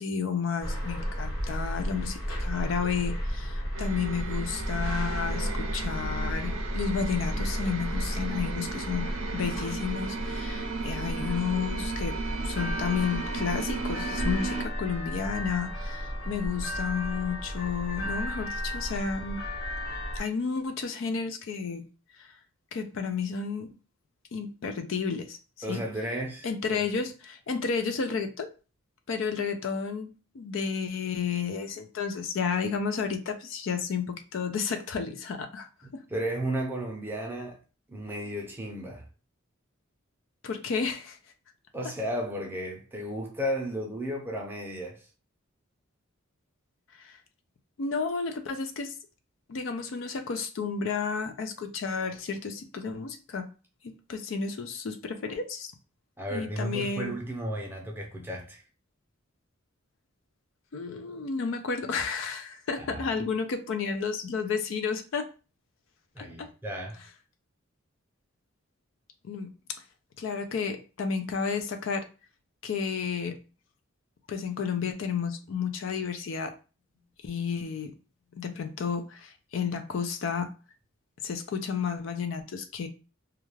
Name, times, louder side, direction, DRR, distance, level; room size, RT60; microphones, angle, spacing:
voice 1, 0.0-19.4 20.1-21.8 22.2-22.3 22.7-23.7 24.3-25.4 25.7-25.8 26.4-28.5 29.1-36.0 40.4-41.2 47.0-47.2 47.8-48.9 49.5-53.5 53.8-55.7 56.3-57.1 60.7-65.3 66.2-66.5 69.2-69.5 70.2-72.1 72.6-73.4 74.3-76.6 77.2-77.9 78.3-80.5 81.2-82.9, left 5 dB, 65° left, 0.4 m, -32 dB
sound 1, 0.6-20.2, equal, 90° left, 1.1 m, -33 dB
sound 2, 3.7-14.7, right 4 dB, 75° right, 0.5 m, -36 dB
voice 2, 25.6-26.8 36.1-37.6 37.9-39.1 41.7-45.1 56.2-58.6 62.8-63.1 66.1-67.0, equal, 10° right, 0.5 m, -34 dB
2.3 x 2.2 x 3.0 m
head